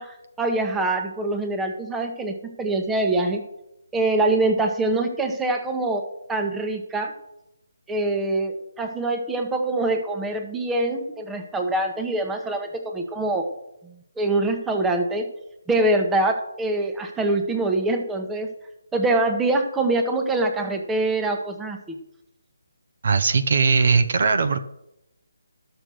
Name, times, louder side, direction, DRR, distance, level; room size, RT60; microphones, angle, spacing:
voice 1, 0.0-3.4 3.9-7.1 7.9-13.5 14.2-15.3 15.7-18.5 18.9-22.0, right 2 dB, 10° right, 4 dB, 1.1 m, -24 dB
voice 2, 23.0-24.6, right 4 dB, 55° right, 9 dB, 0.8 m, -19 dB
12.5 x 6.8 x 6.3 m, 0.86 s
figure-of-eight pair, 150°, 0 cm